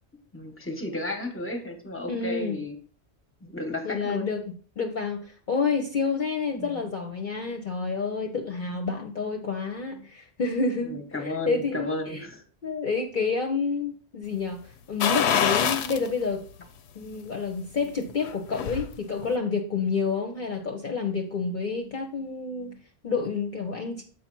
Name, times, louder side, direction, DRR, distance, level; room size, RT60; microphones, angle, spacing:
voice 1, 0.3-2.8 3.4-4.3 6.5-6.8 10.9-12.4, left 1 dB, 10° left, 6 dB, 1.0 m, -33 dB
voice 2, 2.1-2.6 3.8-4.4 4.8-12.2 12.6-14.6 14.9-16.4 17.0-24.0, left 4 dB, 50° left, 3 dB, 0.8 m, -29 dB
sound 1, 15.0-16.1 16.5-16.6 18.1-18.9 19.2-19.3, left 8 dB, 80° left, 0.9 m, -25 dB
7.1 x 5.0 x 4.5 m, 0.42 s
omnidirectional pair, 1.1 m